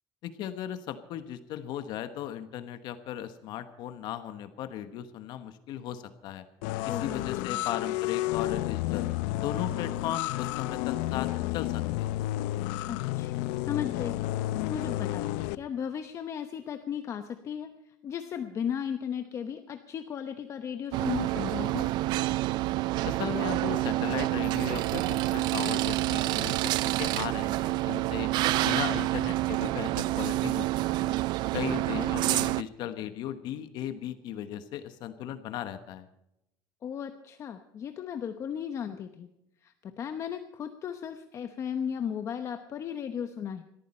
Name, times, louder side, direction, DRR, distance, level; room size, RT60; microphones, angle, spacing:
voice 1, 0.2-6.4 6.8-9.0 9.4-12.2 23.0-28.3 28.6-30.7 31.0-31.2 31.5-36.1, left 10 dB, 55° left, 10 dB, 1.2 m, -37 dB
sound 1, 6.6-15.5, left 16 dB, 90° left, 0.6 m, -31 dB
voice 2, 6.9-7.2 7.5-7.6 12.9-14.2 14.6-21.9 31.7-32.1 36.8-39.3 39.6-43.6, left 8 dB, 35° left, 8 dB, 0.9 m, -36 dB
sound 2, 20.9-32.6, right 17 dB, 55° right, 0.5 m, -28 dB
21.0 x 14.0 x 4.3 m, 0.84 s
cardioid pair, 160°, 9 cm